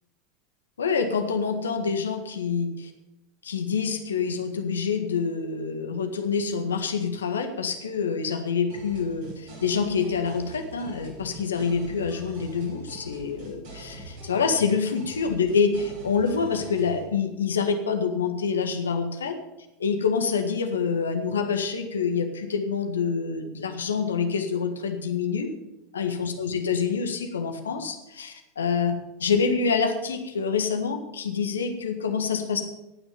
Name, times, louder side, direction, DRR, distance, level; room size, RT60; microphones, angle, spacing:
voice 1, 0.8-2.9 3.4-19.4 19.8-25.5 25.9-32.6, left 5 dB, 75° left, 6 dB, 1.7 m, -26 dB
sound 1, 8.7-17.0, right 1 dB, 50° right, 6.4 m, -43 dB
17.5 x 6.2 x 7.1 m, 0.98 s
figure-of-eight pair, 85°, 0 cm